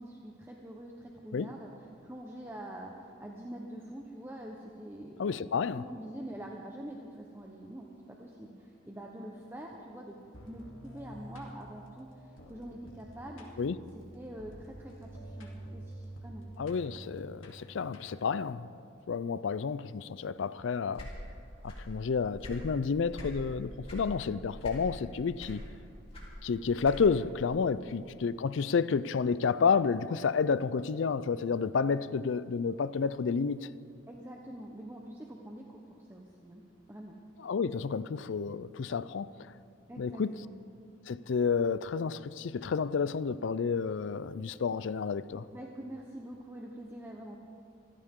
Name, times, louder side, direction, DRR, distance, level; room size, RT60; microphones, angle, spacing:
voice 1, 0.0-1.7 2.0-10.2 10.5-13.5 13.9-16.4 27.8-27.9 34.1-37.2 39.9-40.5 45.5-47.4, right 1 dB, 10° right, 0.9 m, -45 dB
voice 2, 5.2-5.8 13.6-13.8 16.6-18.7 19.1-21.1 21.6-25.6 26.4-33.7 37.4-39.3 40.0-40.3 41.1-45.4, left 5 dB, 70° left, 0.4 m, -30 dB
sound 1, 10.3-18.4, right 1 dB, 90° left, 2.7 m, -48 dB
sound 2, 20.9-22.0 22.2-23.4 23.8-24.1 24.6-25.1 25.4-27.3, equal, 30° left, 3.5 m, -43 dB
26.0 x 14.5 x 3.7 m
head